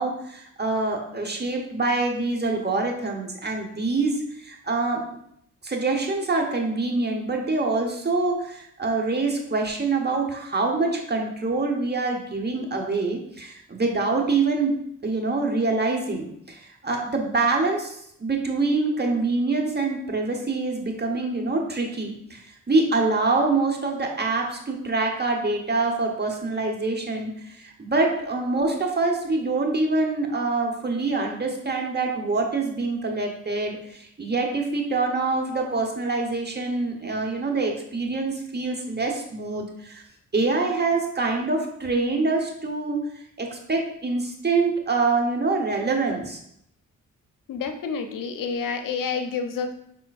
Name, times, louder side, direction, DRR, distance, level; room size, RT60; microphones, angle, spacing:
voice 1, 0.0-5.2 5.6-14.7 15.0-40.0 40.3-43.0 43.4-46.4, right 3 dB, 30° right, 2 dB, 1.1 m, -25 dB
voice 2, 47.5-49.7, left 5 dB, 70° left, 7 dB, 0.6 m, -29 dB
5.7 x 3.7 x 2.5 m, 0.72 s
supercardioid pair, 50°, 33 cm